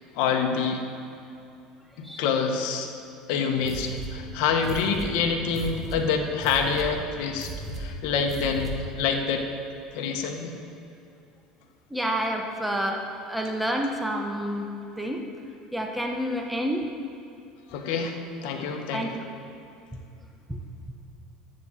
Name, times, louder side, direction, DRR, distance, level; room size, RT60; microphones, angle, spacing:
voice 1, 0.1-0.8 2.0-2.9 3.3-9.5 9.9-10.5 17.7-19.2, left 5 dB, 70° left, 3 dB, 1.3 m, -27 dB
sound 1, 3.6-9.0, right 2 dB, 20° right, 1.9 m, -37 dB
voice 2, 11.9-13.0 13.3-14.7 15.0-15.2 15.7-16.8 18.9-19.2 20.5-20.6, equal, 5° right, 1 dB, 1.2 m, -28 dB
12.0 x 7.8 x 7.8 m, 2.6 s
supercardioid pair, 115°, 0 cm